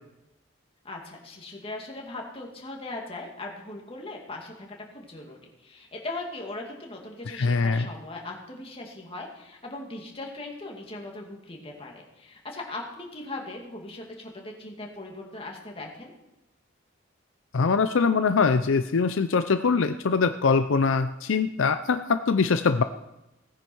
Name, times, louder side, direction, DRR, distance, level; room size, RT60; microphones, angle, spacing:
voice 1, 0.8-16.1, left 2 dB, 30° left, 0 dB, 2.5 m, -39 dB
voice 2, 7.3-7.9 17.5-22.8, left 5 dB, 75° left, 10 dB, 0.5 m, -23 dB
17.5 x 9.9 x 4.6 m, 0.92 s
head